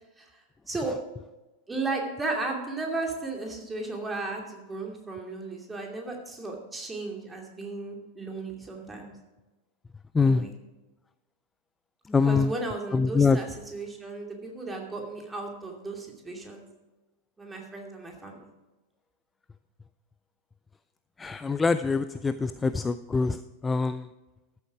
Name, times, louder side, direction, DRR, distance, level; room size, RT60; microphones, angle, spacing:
voice 1, 1.7-9.1 10.2-10.5 12.3-16.6 17.4-18.5, right 3 dB, 10° right, 1 dB, 2.6 m, -35 dB
voice 2, 10.1-10.5 12.1-12.5 12.9-13.4 21.2-24.1, left 4 dB, 15° left, 13 dB, 0.3 m, -24 dB
13.5 x 8.0 x 4.8 m, 1.1 s
figure-of-eight pair, 90°, 0 cm